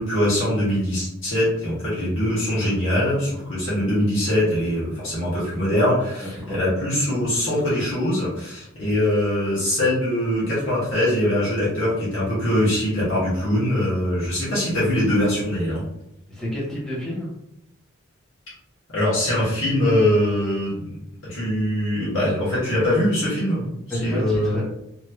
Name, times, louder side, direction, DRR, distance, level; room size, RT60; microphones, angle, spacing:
voice 1, 0.0-15.8 18.9-20.8 21.2-24.6, left 1 dB, 65° left, -9 dB, 1.3 m, -22 dB
voice 2, 16.3-17.3 23.9-24.6, equal, ahead, -7 dB, 1.0 m, -29 dB
3.0 x 2.8 x 2.3 m, 0.82 s
head